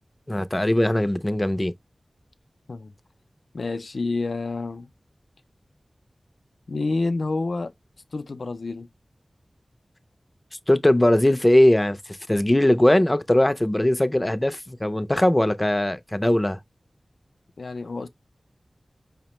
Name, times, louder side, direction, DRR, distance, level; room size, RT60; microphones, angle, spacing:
voice 1, 0.3-1.7 10.7-16.6, left 1 dB, 20° left, 0.4 m, -20 dB
voice 2, 3.5-4.9 6.7-7.7 8.1-8.9 17.6-18.1, left 3 dB, 80° left, 0.4 m, -28 dB
4.9 x 2.1 x 2.9 m
wide cardioid pair, 45°, 0 cm